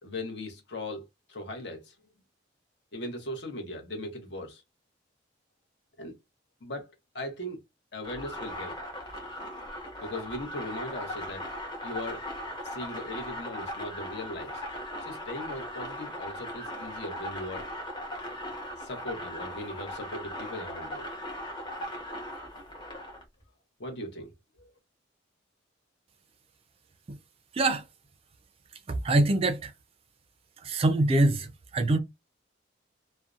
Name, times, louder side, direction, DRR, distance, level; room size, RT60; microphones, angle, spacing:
voice 1, 0.0-1.0 1.3-1.9 2.9-4.6 6.0-6.1 6.6-7.6 7.9-8.8 10.0-11.5 11.8-12.2 12.6-14.6 15.0-17.7 18.8-21.1 23.8-24.3 24.6-24.7, left 1 dB, 60° left, 0.8 m, -39 dB
sound 1, 8.0-23.2, equal, 25° left, 0.8 m, -38 dB
voice 2, 28.9-29.7 30.6-32.0, right 2 dB, 30° right, 0.3 m, -24 dB
2.6 x 2.1 x 2.4 m
head